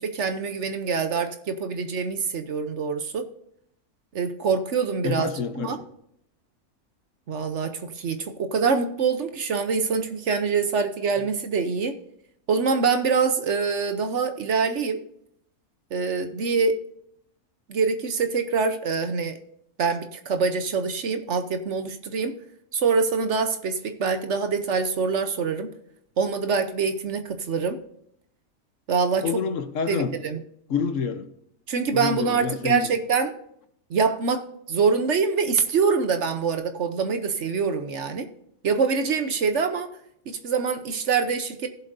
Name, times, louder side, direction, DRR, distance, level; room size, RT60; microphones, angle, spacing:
voice 1, 0.0-3.3 4.1-5.8 7.3-12.0 12.5-15.0 15.9-16.8 17.7-19.4 19.8-22.3 22.7-25.7 26.2-27.8 28.9-29.3 29.9-30.4 31.7-33.3 33.9-38.3 38.6-39.9 40.3-41.7, right 5 dB, 55° right, 8 dB, 1.1 m, -25 dB
voice 2, 5.0-5.8 29.2-30.1 30.7-31.3 31.9-32.9, left 6 dB, 60° left, 9 dB, 1.3 m, -28 dB
16.5 x 7.4 x 2.7 m, 0.71 s
omnidirectional pair, 1.5 m